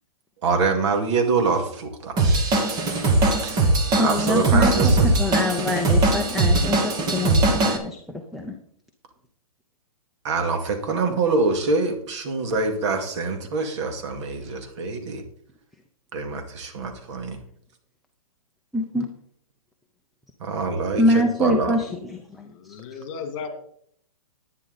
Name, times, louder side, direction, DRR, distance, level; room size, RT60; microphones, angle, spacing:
voice 1, 0.4-2.2 3.4-3.7 4.0-5.2 10.2-15.2 16.1-17.4 20.4-21.8, right 4 dB, 50° right, 5 dB, 2.2 m, -25 dB
Drum kit / Drum, 2.2-7.8, right 2 dB, 20° right, 1.5 m, -20 dB
voice 2, 4.0-4.7 5.0-8.5 18.7-19.1 21.0-22.5, left 1 dB, ahead, 4 dB, 0.6 m, -25 dB
voice 3, 22.4-23.5, left 6 dB, 45° left, 7 dB, 2.4 m, -35 dB
11.5 x 9.7 x 4.0 m, 0.63 s
hypercardioid pair, 150°, 19 cm